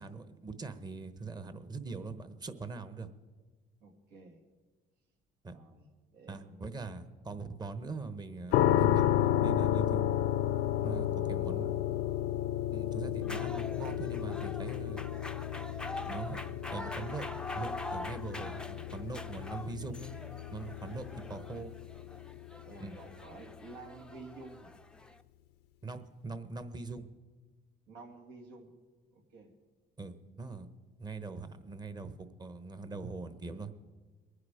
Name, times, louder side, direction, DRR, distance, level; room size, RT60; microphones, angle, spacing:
voice 1, 0.0-3.1 5.4-5.6 6.3-10.0 10.8-11.7 12.7-15.1 16.0-16.4 16.7-17.3 17.5-20.1 20.5-21.7 22.8-22.9 25.8-27.1 30.0-30.7 31.0-33.7, right 4 dB, 25° right, 11 dB, 1.0 m, -42 dB
voice 2, 3.8-4.4 5.5-6.7 22.6-24.7 27.9-28.7 29.1-29.5, right 3 dB, 85° right, 2 dB, 2.3 m, -51 dB
sound 1, 8.5-23.4, left 12 dB, 80° left, 0.6 m, -32 dB
sound 2, 13.2-25.2, left 1 dB, 5° left, 0.5 m, -44 dB
22.5 x 9.7 x 5.0 m, 1.3 s
cardioid pair, 110°, 17 cm